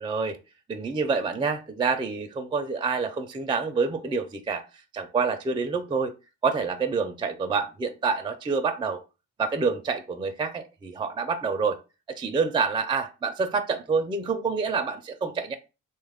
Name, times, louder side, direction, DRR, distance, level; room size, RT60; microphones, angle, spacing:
voice 1, 0.0-0.4 0.7-4.6 4.9-6.1 6.4-9.0 9.4-11.8 12.1-15.5, right 4 dB, 15° right, 0.4 m, -27 dB
3.1 x 2.3 x 3.4 m
cardioid pair, 90°, 30 cm